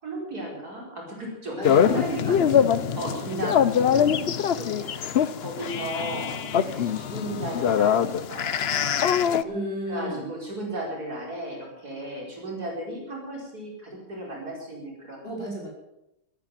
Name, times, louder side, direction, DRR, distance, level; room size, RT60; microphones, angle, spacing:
voice 1, 0.0-2.6 2.9-8.7 9.2-9.5 9.9-15.3, right 1 dB, 55° right, -2 dB, 5.3 m, -36 dB
sound 1, 1.6-9.4, left 8 dB, 80° left, 0.5 m, -23 dB
voice 2, 1.6-3.0 3.3-3.7 4.0-4.2 6.7-6.9 9.4-10.2 15.2-15.7, equal, 30° left, -4 dB, 5.9 m, -34 dB
14.0 x 13.5 x 7.6 m, 0.86 s
omnidirectional pair, 2.0 m